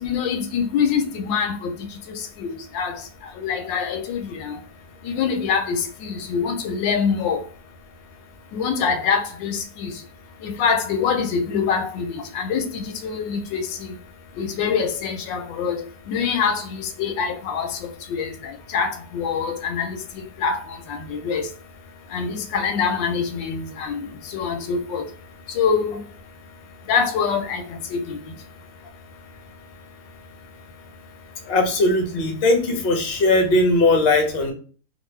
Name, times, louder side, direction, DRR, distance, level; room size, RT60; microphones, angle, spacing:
voice 1, 0.0-1.7 2.4-2.5 2.7-2.9 3.4-4.5 5.0-7.4 8.5-9.9 10.4-12.1 12.3-13.9 14.4-15.8 16.1-17.7 18.1-18.3 18.7-20.0 20.4-20.6 20.9-21.4 22.1-23.9 24.3-25.0 25.5-26.0 26.9-27.6 27.9-28.2, left 6 dB, 90° left, 1.3 m, -24 dB
voice 2, 31.4-34.5, left 2 dB, 60° left, 0.6 m, -19 dB
3.0 x 2.3 x 3.1 m
omnidirectional pair, 1.9 m